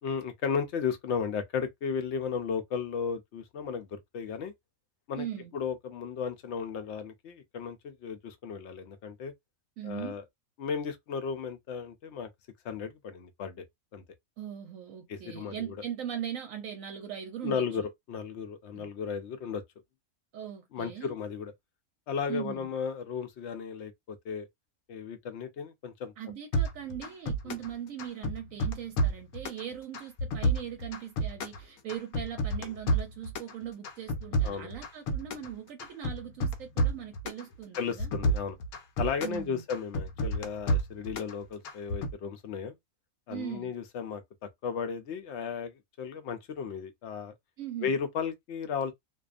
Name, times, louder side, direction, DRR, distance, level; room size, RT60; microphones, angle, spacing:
voice 1, 0.0-4.5 5.1-5.3 5.5-9.3 9.8-10.2 10.6-12.3 12.6-13.6 13.9-14.0 15.1-15.8 17.4-19.6 20.7-21.5 22.1-24.5 24.9-26.1 27.5-27.6 34.4-34.7 37.8-38.6 39.0-42.8 43.3-44.2 44.6-47.3 47.8-48.9, left 6 dB, 65° left, 0.8 m, -35 dB
voice 2, 5.2-5.6 9.8-10.2 14.4-17.9 18.7-18.9 20.3-21.1 22.3-22.7 26.2-38.1 39.2-39.6 43.3-43.8 47.6-48.0, right 9 dB, 70° right, 0.9 m, -40 dB
sound 1, 26.5-27.7 28.0-29.6 29.9-31.6 31.9-33.5 33.8-35.5 35.8-37.4 37.7-39.4 39.7-41.3 41.6-42.1, right 1 dB, 85° left, 1.1 m, -29 dB
2.5 x 2.2 x 2.4 m
omnidirectional pair, 1.5 m